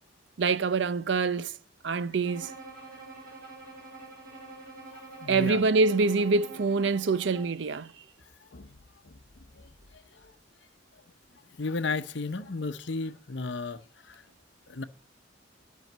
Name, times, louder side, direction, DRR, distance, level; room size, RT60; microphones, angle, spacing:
voice 1, 0.4-1.5 1.8-2.5 5.3-7.9, right 4 dB, 70° right, 0.5 m, -25 dB
Bowed string instrument, 2.2-7.6, right 3 dB, 50° right, 4.8 m, -46 dB
voice 2, 4.9-5.6 8.5-10.3 11.5-14.2 14.7-14.8, left 3 dB, 65° left, 0.8 m, -35 dB
11.0 x 5.7 x 7.3 m
head